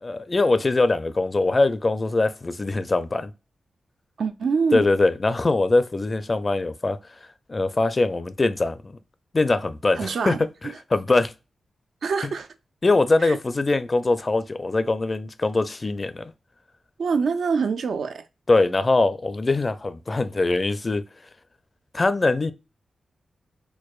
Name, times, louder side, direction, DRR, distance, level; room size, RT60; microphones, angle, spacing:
voice 1, 0.0-3.3 4.7-7.0 7.5-8.9 9.3-10.5 10.9-11.3 12.8-16.3 18.5-21.0 21.9-22.5, left 2 dB, 40° left, 0.4 m, -22 dB
voice 2, 4.2-4.9 9.9-10.4 12.0-12.5 13.2-13.4 17.0-18.3, right 5 dB, 80° right, 0.4 m, -25 dB
4.6 x 2.1 x 2.3 m
cardioid pair, 55°, 0 cm